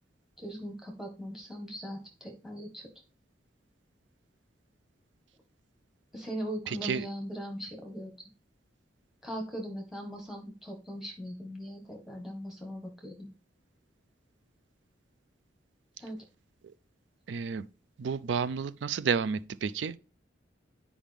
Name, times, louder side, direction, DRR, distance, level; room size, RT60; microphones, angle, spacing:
voice 1, 0.4-2.9 6.1-8.3 9.2-13.3 16.0-16.2, equal, ahead, 1.6 m, -40 dB
voice 2, 6.7-7.1 17.3-17.7 18.0-20.0, right 6 dB, 85° right, 0.4 m, -31 dB
9.0 x 4.9 x 3.5 m
head